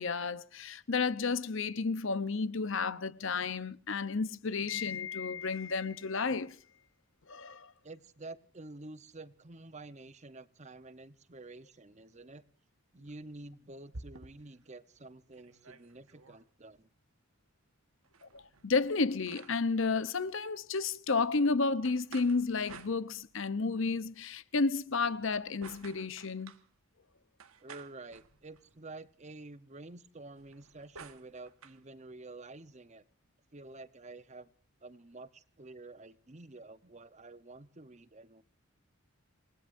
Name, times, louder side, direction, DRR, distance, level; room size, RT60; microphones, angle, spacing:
voice 1, 0.0-6.6 7.3-7.7 18.2-26.6, left 4 dB, 60° left, 0.8 m, -32 dB
voice 2, 7.8-12.4 12.9-16.9 27.6-33.0 33.5-34.5 34.8-38.4, right 2 dB, 30° right, 0.9 m, -49 dB
sound 1, 13.1-14.6 15.0-15.1 15.3-16.4 18.0-19.9 21.8-23.5 24.9-26.7 27.4-28.8 30.3-31.8, right 4 dB, 75° right, 1.4 m, -53 dB
28.0 x 19.5 x 2.6 m
head